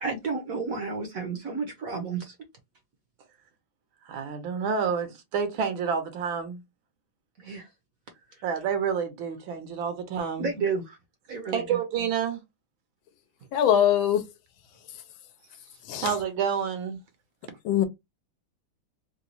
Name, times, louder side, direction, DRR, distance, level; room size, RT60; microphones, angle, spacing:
voice 1, 0.0-2.3 7.4-7.7 8.3-8.4 10.4-11.0 11.3-11.8, right 4 dB, 60° right, 1.0 m, -31 dB
voice 2, 4.1-6.6 8.4-10.5 11.5-12.4 16.0-17.0, right 7 dB, 75° right, 1.6 m, -29 dB
voice 3, 13.5-14.2 15.9-16.1 17.6-17.9, left 10 dB, 75° left, 1.3 m, -22 dB
3.9 x 2.3 x 2.9 m
omnidirectional pair, 2.2 m